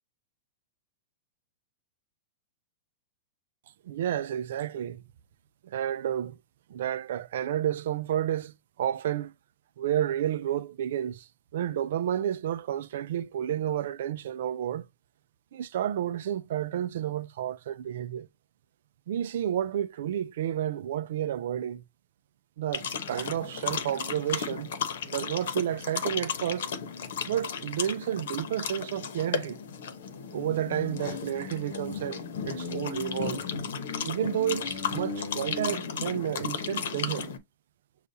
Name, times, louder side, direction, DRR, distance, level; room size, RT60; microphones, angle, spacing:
voice 1, 3.9-5.0 5.6-6.3 6.7-9.3 9.8-11.3 11.5-14.8 15.5-18.3 19.1-21.8 22.6-24.7 25.0-26.7 27.3-29.6 30.3-33.4 34.0-37.3, right 10 dB, 65° right, 0.4 m, -31 dB
sound 1, 22.7-37.4, left 6 dB, 70° left, 0.9 m, -34 dB
6.6 x 2.3 x 2.7 m
supercardioid pair, 160°, 0 cm